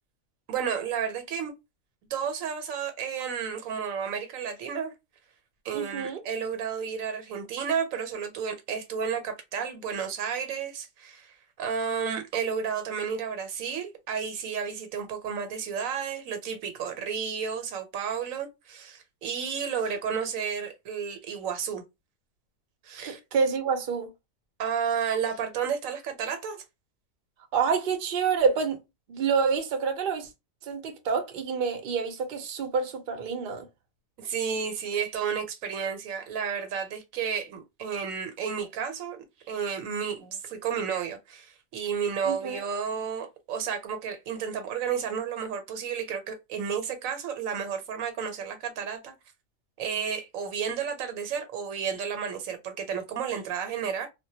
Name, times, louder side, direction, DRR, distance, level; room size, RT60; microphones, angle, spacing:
voice 1, 0.5-1.5 2.1-4.9 5.6-21.8 22.8-23.2 24.6-26.6 34.2-39.2 39.5-49.1 49.8-54.1, right 7 dB, 80° right, 1.0 m, -32 dB
voice 2, 5.7-6.2 23.0-24.1 27.5-28.8 29.1-30.3 30.6-33.7 42.2-42.6, right 5 dB, 55° right, 0.6 m, -27 dB
2.2 x 2.1 x 2.7 m
omnidirectional pair, 1.4 m